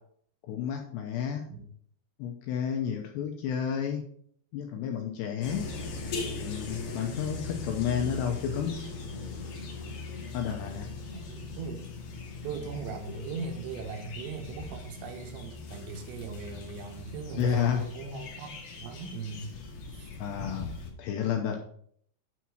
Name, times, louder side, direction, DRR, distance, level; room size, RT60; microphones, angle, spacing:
voice 1, 0.5-1.5 2.2-4.0 4.5-5.7 6.4-8.7 10.3-10.9 17.4-17.9 20.2-20.7 21.0-21.6, left 8 dB, 80° left, 2 dB, 2.6 m, -31 dB
sound 1, 5.4-20.9, left 3 dB, 55° left, 2.5 m, -40 dB
voice 2, 11.1-11.9 12.4-19.5 19.9-20.2, right 5 dB, 80° right, 4 dB, 3.3 m, -39 dB
9.4 x 4.3 x 6.1 m, 0.64 s
omnidirectional pair, 5.5 m